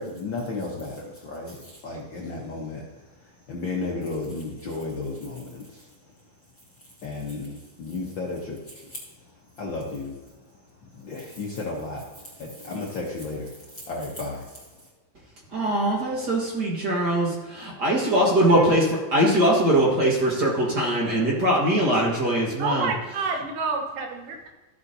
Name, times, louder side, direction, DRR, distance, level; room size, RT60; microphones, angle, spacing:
voice 1, 0.0-2.8 3.5-5.9 7.0-9.0 9.6-10.1 10.9-14.6, left 3 dB, 65° left, -2 dB, 1.1 m, -33 dB
voice 2, 15.5-22.9, right 1 dB, 40° right, -3 dB, 1.7 m, -22 dB
voice 3, 22.6-24.3, right 4 dB, 85° right, 2 dB, 2.8 m, -28 dB
13.5 x 8.1 x 2.8 m, 1.2 s
omnidirectional pair, 3.6 m